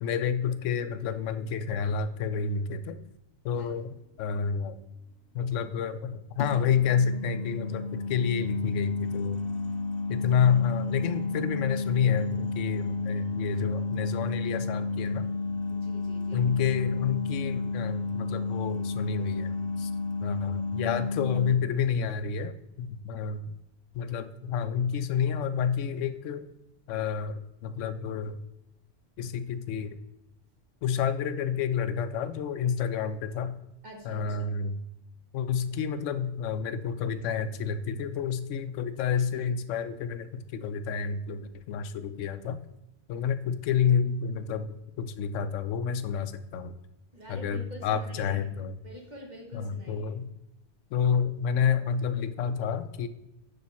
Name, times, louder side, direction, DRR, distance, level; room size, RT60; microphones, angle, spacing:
voice 1, 0.0-3.0 3.4-4.8 5.3-9.4 10.1-15.3 16.3-19.9 20.2-23.5 23.9-26.5 26.9-28.4 29.2-30.0 30.8-33.6 34.0-34.8 35.3-42.6 43.1-46.7 47.3-48.8 49.5-50.3 50.9-53.1, left 7 dB, 90° left, 12 dB, 0.9 m, -29 dB
sound 1, 3.6-3.8 6.4-21.5, left 3 dB, 60° left, 0.8 m, -32 dB
voice 2, 15.7-16.5 33.8-34.5 47.1-48.4 48.8-50.1, equal, 40° right, 0 dB, 1.5 m, -46 dB
10.0 x 3.4 x 4.2 m, 0.87 s
omnidirectional pair, 1.2 m